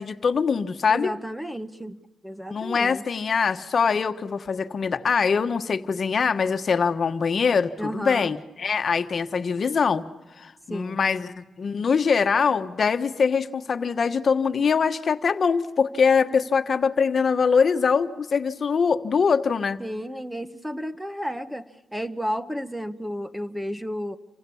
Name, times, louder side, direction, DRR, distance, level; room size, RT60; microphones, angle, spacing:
voice 1, 0.0-1.1 2.5-10.0 10.4-19.8, left 5 dB, 50° left, 8 dB, 1.3 m, -23 dB
voice 2, 0.9-2.0 2.2-3.0 7.8-8.3 10.7-11.0 19.8-21.7 21.9-24.2, equal, 5° right, 10 dB, 1.1 m, -32 dB
29.0 x 25.0 x 7.1 m, 1.1 s
cardioid pair, 110°, 0 cm